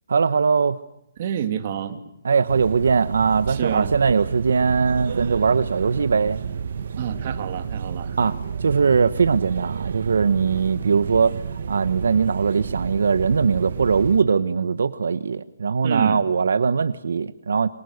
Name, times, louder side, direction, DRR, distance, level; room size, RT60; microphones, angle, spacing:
voice 1, 0.1-0.8 2.2-6.4 8.2-11.4 11.7-17.7, right 5 dB, 80° right, 13 dB, 1.1 m, -20 dB
voice 2, 1.2-2.0 3.5-3.9 7.0-8.2 15.8-16.2, right 9 dB, 40° right, 7 dB, 2.6 m, -28 dB
sound 1, 2.5-14.2, right 6 dB, 60° right, 1.6 m, -31 dB
28.5 x 25.0 x 6.6 m, 0.82 s
hypercardioid pair, 165°, 0 cm